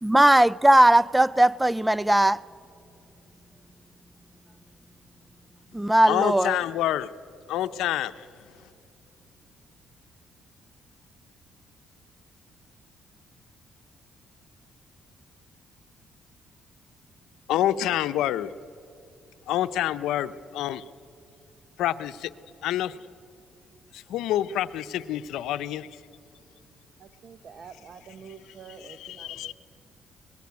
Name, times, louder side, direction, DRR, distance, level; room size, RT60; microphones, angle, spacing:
voice 1, 0.0-2.4 5.7-6.6, right 1 dB, 10° right, 0.5 m, -18 dB
voice 2, 6.1-7.1 7.5-8.3 17.5-18.5 19.5-20.8 21.8-22.3 22.6-23.0 23.9-26.0 28.8-29.5, left 12 dB, 90° left, 0.8 m, -27 dB
voice 3, 27.0-29.5, right 6 dB, 55° right, 1.1 m, -47 dB
25.0 x 20.0 x 9.5 m
cardioid pair, 90°, 0 cm